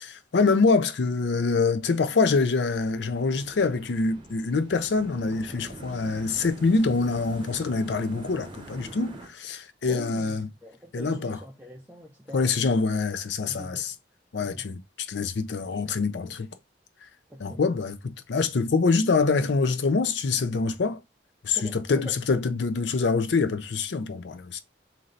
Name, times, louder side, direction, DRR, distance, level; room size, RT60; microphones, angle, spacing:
voice 1, 0.0-10.5 10.9-11.4 12.3-13.9 14.3-16.5 17.4-21.0 21.4-21.6 21.9-24.6, left 4 dB, 80° left, 0.5 m, -25 dB
sound 1, 2.7-9.3, right 1 dB, 30° right, 0.9 m, -44 dB
voice 2, 9.9-12.7 13.4-13.9 14.4-14.7 17.3-17.7 21.5-22.2, equal, 10° right, 0.6 m, -43 dB
3.1 x 2.7 x 3.9 m
head